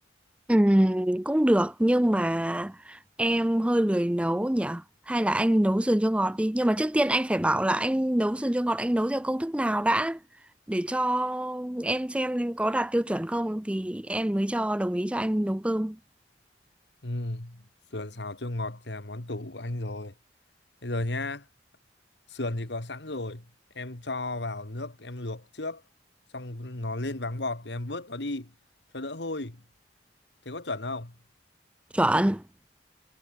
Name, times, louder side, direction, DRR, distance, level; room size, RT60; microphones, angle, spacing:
voice 1, 0.5-10.2 10.7-16.0 31.9-32.4, right 1 dB, 5° right, 0.5 m, -25 dB
voice 2, 17.0-17.6 17.9-20.1 20.8-21.5 22.3-23.5 23.7-25.8 26.3-28.5 28.9-29.6 30.5-31.2, left 2 dB, 75° left, 2.1 m, -34 dB
head